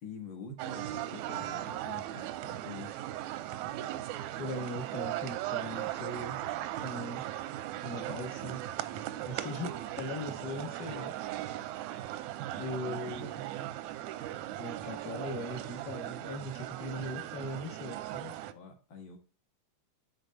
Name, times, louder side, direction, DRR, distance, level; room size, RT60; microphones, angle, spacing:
voice 1, 0.0-2.9 12.5-13.8 16.9-17.0 18.5-19.2, left 3 dB, 50° left, 4 dB, 1.5 m, -46 dB
sound 1, 0.6-18.5, right 14 dB, 80° right, 1.7 m, -38 dB
voice 2, 4.1-6.4 6.8-7.3 7.8-8.6 9.3-11.1 12.6-13.4 14.6-18.3, left 1 dB, 70° left, 2 dB, 0.9 m, -40 dB
6.8 x 4.1 x 6.4 m, 0.37 s
omnidirectional pair, 3.7 m